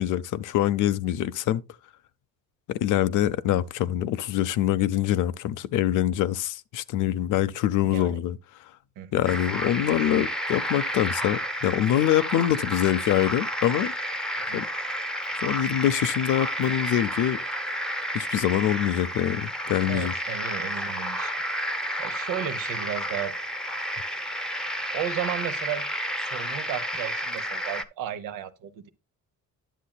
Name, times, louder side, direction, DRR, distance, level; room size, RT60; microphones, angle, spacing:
voice 1, 0.0-1.6 2.7-8.4 9.1-13.9 14.5-14.7 15.4-17.4 18.1-20.1, left 12 dB, 70° left, 0.5 m, -24 dB
voice 2, 7.8-8.2 9.0-9.3 14.3-14.6 19.9-21.3 22.0-23.3 23.8-23.9 24.9-25.8 26.2-28.9, right 10 dB, 85° right, 0.9 m, -34 dB
sound 1, 9.2-27.8, equal, ahead, 0.7 m, -31 dB
10.0 x 7.4 x 2.3 m
cardioid pair, 95°, 32 cm